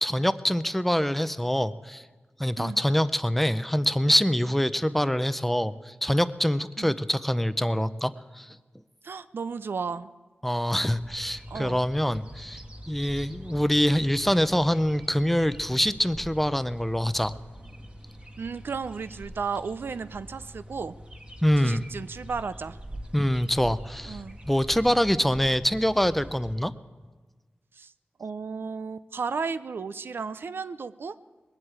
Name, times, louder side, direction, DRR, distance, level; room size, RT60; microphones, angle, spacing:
voice 1, 0.0-2.0 2.4-8.6 10.4-17.3 21.4-21.9 23.1-26.7, equal, 5° left, 13 dB, 0.5 m, -25 dB
voice 2, 9.0-10.1 11.5-11.8 18.4-21.0 21.6-22.8 24.0-24.4 27.7-27.9 28.2-31.2, right 5 dB, 70° right, 14 dB, 0.5 m, -34 dB
sound 1, 10.8-26.6, equal, 25° right, 1.4 m, -44 dB
21.0 x 7.9 x 8.8 m, 1.3 s
wide cardioid pair, 105°, 4 cm